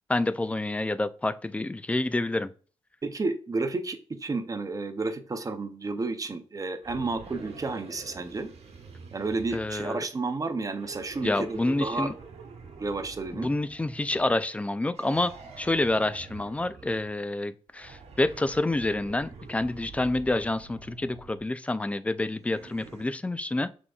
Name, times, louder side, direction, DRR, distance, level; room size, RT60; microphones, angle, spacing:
voice 1, 0.1-2.5 9.5-10.0 11.2-12.1 13.3-23.7, left 2 dB, 10° left, 0.3 m, -28 dB
voice 2, 3.0-8.5 9.1-12.1 12.8-13.5, right 3 dB, 35° right, 0.6 m, -31 dB
sound 1, 6.8-10.1 10.7-14.4 14.9-17.1 17.7-21.4 22.3-23.1, right 4 dB, 80° right, 1.1 m, -47 dB
5.9 x 3.7 x 2.3 m
cardioid pair, 85°, 11 cm